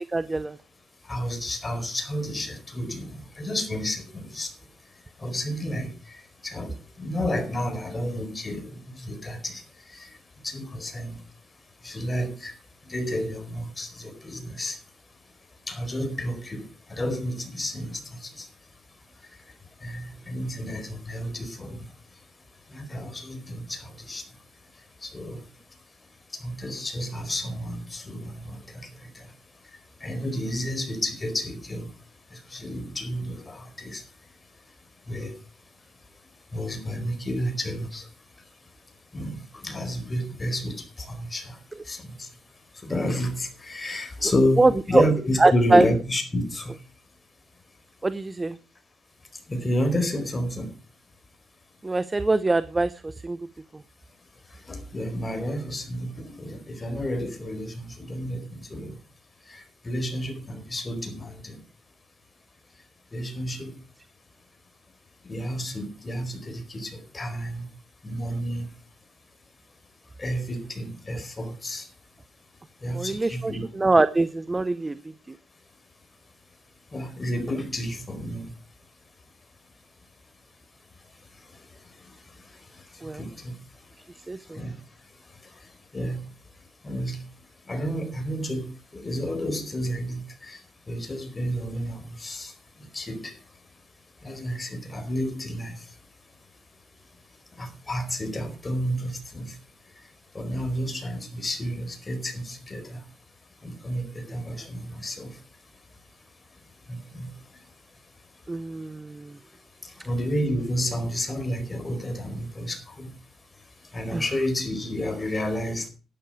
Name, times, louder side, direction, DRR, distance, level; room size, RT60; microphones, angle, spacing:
voice 1, 0.1-0.6 44.6-45.1 45.4-45.9 48.0-48.6 51.8-53.4 72.9-75.0 83.0-83.2 84.3-84.6 108.5-109.4 114.1-114.2, right 2 dB, 20° right, 0.7 m, -23 dB
voice 2, 1.1-3.1 3.4-4.5 5.2-9.6 9.9-10.1 10.4-11.1 11.8-12.5 12.9-14.8 15.7-16.6 16.9-18.5 19.8-21.8 22.7-24.2 25.0-25.4 26.4-28.9 29.1-29.2 30.0-31.9 32.3-34.0 35.1-35.3 36.5-38.1 39.1-41.6 41.9-42.3 42.8-46.7 49.5-50.7 54.7-58.9 59.5-61.6 63.1-63.7 65.3-67.7 68.0-68.7 70.2-71.9 72.8-73.6 76.9-78.4 83.2-83.5 84.5-84.7 85.9-86.2 86.8-87.2 87.7-90.6 90.9-92.5 92.9-93.3 94.2-95.8 97.6-99.5 100.3-103.0 103.6-105.3 106.9-107.3 110.0-113.1 113.9-115.9, equal, 25° left, 4.5 m, -30 dB
11.5 x 11.5 x 4.8 m
cardioid pair, 90°, 0 cm